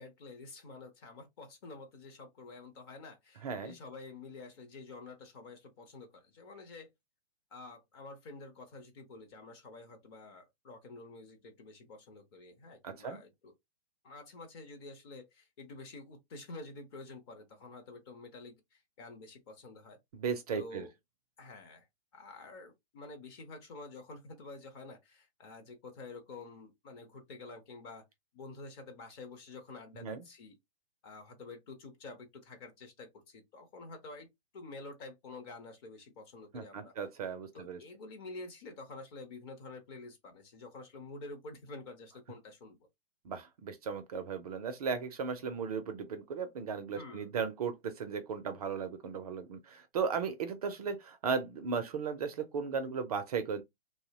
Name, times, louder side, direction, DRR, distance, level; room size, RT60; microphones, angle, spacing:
voice 1, 0.0-6.9 7.5-13.5 14.0-20.0 20.5-20.9 21.4-21.9 22.1-28.0 28.3-30.5 31.0-34.3 34.5-36.9 37.5-42.8 46.9-47.3, left 3 dB, 25° left, 0.5 m, -49 dB
voice 2, 3.4-3.7 12.8-13.2 20.1-20.9 30.0-30.2 36.5-37.8 43.2-53.6, right 6 dB, 40° right, 0.4 m, -36 dB
2.7 x 2.0 x 2.7 m
hypercardioid pair, 140°, 32 cm